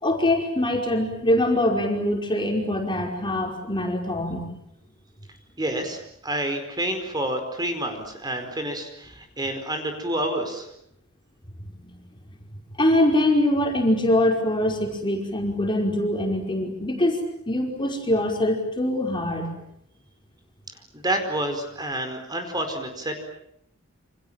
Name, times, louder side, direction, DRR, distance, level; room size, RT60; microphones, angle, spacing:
voice 1, 0.0-4.5 11.6-12.0 12.8-17.2 17.5-19.6, left 1 dB, 25° left, 2 dB, 5.3 m, -23 dB
voice 2, 5.6-10.7 20.9-23.2, right 1 dB, 20° right, 6 dB, 4.8 m, -29 dB
28.5 x 27.5 x 7.5 m, 0.75 s
head